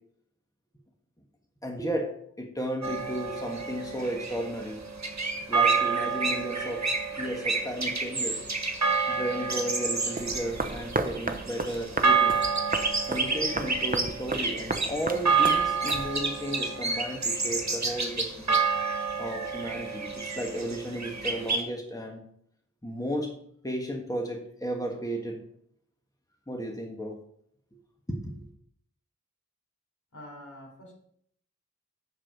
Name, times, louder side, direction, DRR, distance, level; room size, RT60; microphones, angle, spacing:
voice 1, 1.6-4.8 5.5-6.9 7.2-8.4 9.1-12.4 13.1-18.6 19.2-22.2 22.8-25.4 26.5-27.2 28.1-28.4, equal, 10° left, 1 dB, 1.6 m, -34 dB
sound 1, 2.8-21.6, right 4 dB, 65° right, 1.4 m, -28 dB
sound 2, 10.2-16.5, right 2 dB, 30° right, 0.8 m, -34 dB
voice 2, 30.1-30.9, left 1 dB, 75° left, -2 dB, 3.7 m, -46 dB
7.3 x 6.6 x 5.2 m, 0.67 s
wide cardioid pair, 40°, 30 cm